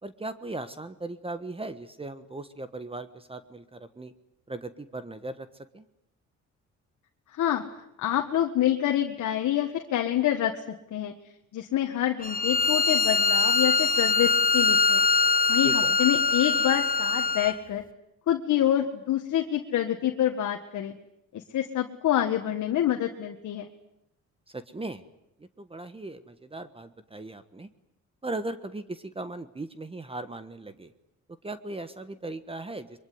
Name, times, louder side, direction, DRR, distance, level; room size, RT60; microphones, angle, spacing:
voice 1, 0.0-4.1 4.5-5.9 15.6-16.0 24.5-25.0 25.4-27.7 28.2-30.9 31.4-33.0, right 2 dB, 20° right, 11 dB, 1.4 m, -38 dB
voice 2, 7.3-7.7 8.0-11.1 11.5-15.0 15.5-17.8 18.3-21.0 21.3-23.7, left 11 dB, 75° left, 3 dB, 1.8 m, -27 dB
Bowed string instrument, 12.2-17.6, left 4 dB, 30° left, 1.5 m, -23 dB
23.5 x 23.0 x 9.5 m, 0.82 s
cardioid pair, 90°, 30 cm